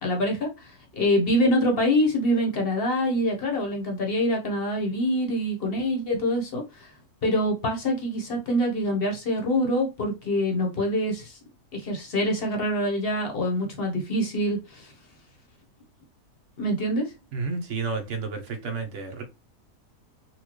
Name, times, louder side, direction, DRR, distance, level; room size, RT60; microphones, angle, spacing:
voice 1, 0.0-6.9 7.2-11.4 11.7-14.9 16.6-17.1, equal, 45° left, 1.0 m, -25 dB
voice 2, 17.3-19.2, right 4 dB, 60° right, 1.0 m, -31 dB
4.3 x 2.3 x 3.0 m
omnidirectional pair, 1.5 m